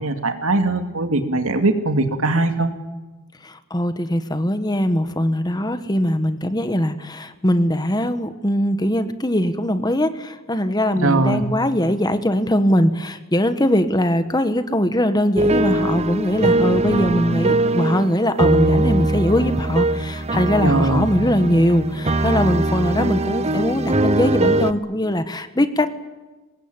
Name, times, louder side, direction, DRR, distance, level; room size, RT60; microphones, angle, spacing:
voice 1, 0.0-2.7 10.9-11.4 20.6-21.1, right 2 dB, 75° right, 7 dB, 2.5 m, -20 dB
voice 2, 3.4-26.0, equal, 20° left, 10 dB, 1.3 m, -21 dB
sound 1, 15.4-24.7, right 2 dB, 30° right, 0.9 m, -21 dB
24.0 x 20.5 x 8.9 m, 1.2 s
head